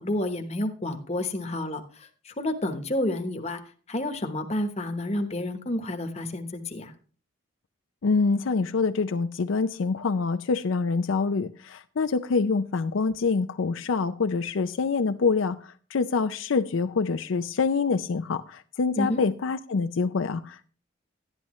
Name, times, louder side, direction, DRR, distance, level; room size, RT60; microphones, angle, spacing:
voice 1, 0.0-3.6 3.9-6.9 19.0-19.2, left 1 dB, 35° left, 6 dB, 1.0 m, -30 dB
voice 2, 8.0-20.7, left 4 dB, 80° left, 10 dB, 0.5 m, -26 dB
12.0 x 10.5 x 3.1 m, 0.41 s
head